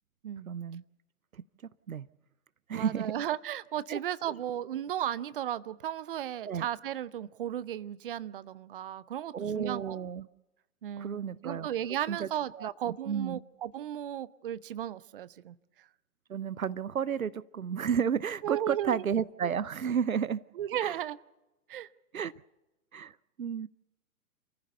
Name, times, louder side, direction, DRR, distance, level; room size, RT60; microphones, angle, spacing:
voice 1, 0.5-0.8 1.3-1.4 1.9-2.1 2.7-3.1 3.9-4.0 4.3-4.4 6.5-6.7 9.3-10.3 11.0-11.7 12.1-12.3 12.5-12.7 13.1-13.4 16.3-20.4 20.8-21.0 22.1-22.3 22.9-23.7, right 7 dB, 70° right, 20 dB, 0.7 m, -32 dB
voice 2, 2.7-10.0 10.8-15.9 18.4-19.0 20.6-21.2 21.7-21.9, right 11 dB, 40° right, 18 dB, 0.7 m, -35 dB
27.5 x 15.0 x 6.9 m, 1.0 s
figure-of-eight pair, 120°, 43 cm